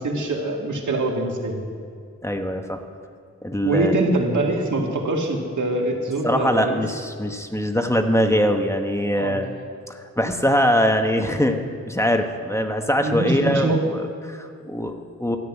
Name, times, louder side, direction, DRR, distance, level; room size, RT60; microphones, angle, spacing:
voice 1, 0.0-1.6 3.6-6.8 9.1-9.4 13.0-13.8, right 2 dB, 85° right, 1 dB, 2.2 m, -23 dB
voice 2, 2.2-2.8 3.4-3.9 6.2-9.5 9.9-15.4, equal, 10° left, 5 dB, 1.1 m, -22 dB
13.5 x 7.7 x 9.7 m, 2.2 s
wide cardioid pair, 100°, 29 cm